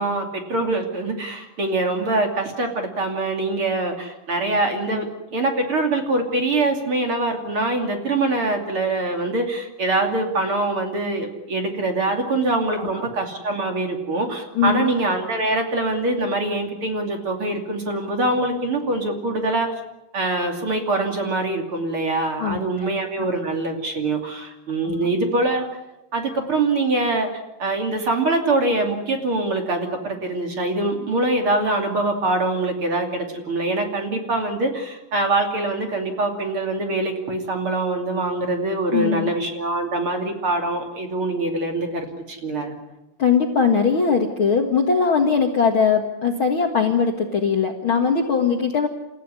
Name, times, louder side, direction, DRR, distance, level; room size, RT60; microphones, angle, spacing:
voice 1, 0.0-19.7 20.1-25.6 26.1-27.3 27.6-42.7, right 2 dB, 35° right, 3 dB, 3.2 m, -24 dB
voice 2, 14.6-14.9 22.4-22.9 24.8-25.1 38.9-39.3 43.2-48.9, left 6 dB, 45° left, 2 dB, 1.9 m, -20 dB
29.5 x 15.5 x 9.8 m, 0.98 s
omnidirectional pair, 4.3 m